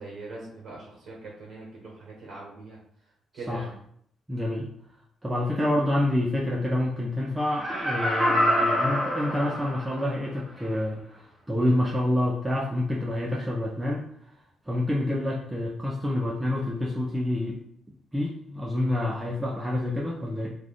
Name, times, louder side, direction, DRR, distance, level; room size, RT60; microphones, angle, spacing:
voice 1, 0.0-2.8 3.3-3.7, right 3 dB, 60° right, -3 dB, 1.0 m, -41 dB
voice 2, 4.3-4.7 5.2-14.1 14.7-17.6 18.1-20.5, left 1 dB, 10° right, -2 dB, 0.4 m, -27 dB
Laughter, 7.4-10.1 10.6-10.7, equal, 25° right, 0.9 m, -26 dB
2.5 x 2.3 x 3.4 m, 0.65 s
cardioid pair, 90°, 0 cm